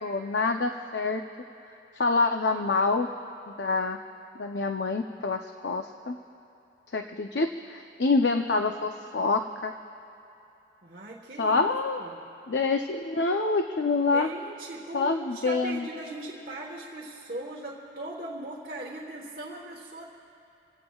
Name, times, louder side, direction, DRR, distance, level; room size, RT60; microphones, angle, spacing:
voice 1, 0.0-1.2 1.9-3.1 3.5-4.0 4.4-6.2 6.9-9.7 11.4-12.0 12.5-14.3 14.9-15.9, left 3 dB, 75° left, 5 dB, 0.6 m, -26 dB
voice 2, 10.8-11.7 12.0-12.2 14.1-20.0, right 2 dB, 55° right, -3 dB, 1.3 m, -39 dB
29.5 x 16.5 x 2.4 m, 2.9 s
head